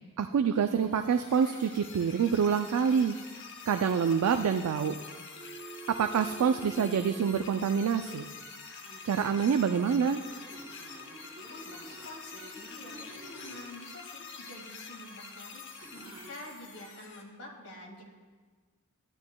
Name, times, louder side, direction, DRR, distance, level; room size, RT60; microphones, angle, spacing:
voice 1, 0.2-3.2 3.7-5.0 5.9-8.3 9.0-10.3, right 7 dB, 85° right, 6 dB, 0.4 m, -26 dB
sound 1, 0.6-17.2, left 5 dB, 55° left, 1.0 m, -47 dB
Telephone, 5.3-8.1 8.8-9.4 10.0-13.7 15.8-16.3, right 3 dB, 25° right, 2.5 m, -49 dB
voice 2, 11.5-15.7 15.9-18.0, left 1 dB, 85° left, -1 dB, 2.0 m, -47 dB
12.5 x 10.5 x 2.2 m, 1.5 s
head